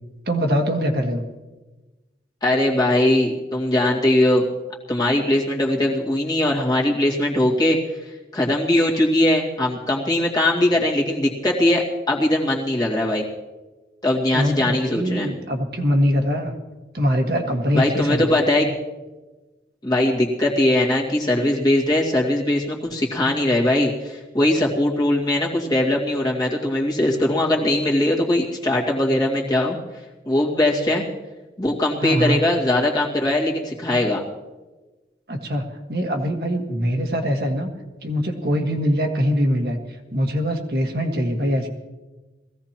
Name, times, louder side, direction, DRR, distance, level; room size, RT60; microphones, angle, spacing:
voice 1, 0.3-1.2 14.3-16.5 16.9-18.7 32.0-32.4 35.3-35.6 35.9-37.7 38.0-39.8 40.1-41.7, equal, 55° right, 3 dB, 1.7 m, -22 dB
voice 2, 2.4-4.4 4.9-7.8 8.3-13.3 14.0-15.3 17.7-18.7 19.8-29.8 30.2-31.0 31.6-34.2, left 1 dB, 20° left, -3 dB, 2.2 m, -20 dB
21.0 x 16.0 x 3.0 m, 1.2 s
head